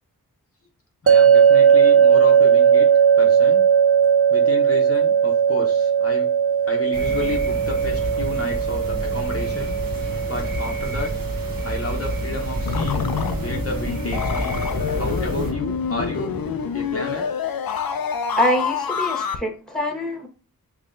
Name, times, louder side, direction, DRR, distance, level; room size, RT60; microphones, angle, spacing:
voice 1, 1.0-2.9 3.2-3.6 4.3-6.3 6.7-9.8 10.3-11.1 11.6-13.1 13.4-14.6 15.0-16.3 16.7-17.3, left 2 dB, 40° left, 0 dB, 0.8 m, -31 dB
sound 1, 1.1-14.2, right 7 dB, 40° right, 0.4 m, -18 dB
sound 2, 6.9-15.5, equal, 65° right, 1.3 m, -29 dB
sound 3, 12.7-19.4, left 6 dB, 75° left, 0.6 m, -26 dB
voice 2, 18.4-20.3, left 1 dB, ahead, 2 dB, 1.3 m, -24 dB
5.7 x 3.2 x 2.5 m, 0.38 s
wide cardioid pair, 60°, 36 cm